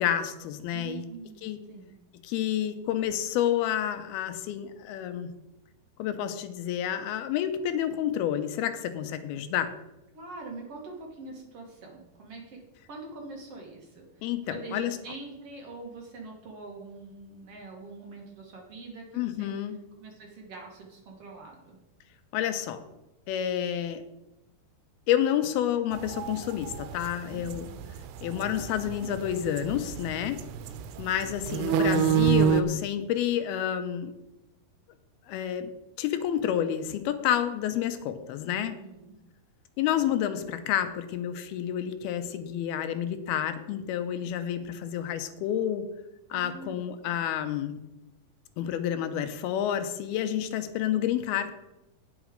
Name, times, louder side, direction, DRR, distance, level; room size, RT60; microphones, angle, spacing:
voice 1, 0.0-1.0 1.4-1.6 2.2-5.3 6.0-9.7 14.2-15.0 19.2-19.8 22.3-22.8 23.3-24.0 25.1-27.7 28.2-30.4 31.0-34.1 35.3-38.8 39.8-45.8 46.3-47.8 48.6-51.5, left 10 dB, 80° left, 9 dB, 2.6 m, -29 dB
voice 2, 0.7-1.9 10.1-19.7 20.0-21.8 27.3-27.8 38.5-39.2 46.3-47.3, right 3 dB, 50° right, 0 dB, 1.9 m, -44 dB
sound 1, 25.9-32.6, right 8 dB, 90° right, 2.6 m, -28 dB
9.2 x 8.1 x 5.1 m, 0.96 s
omnidirectional pair, 4.5 m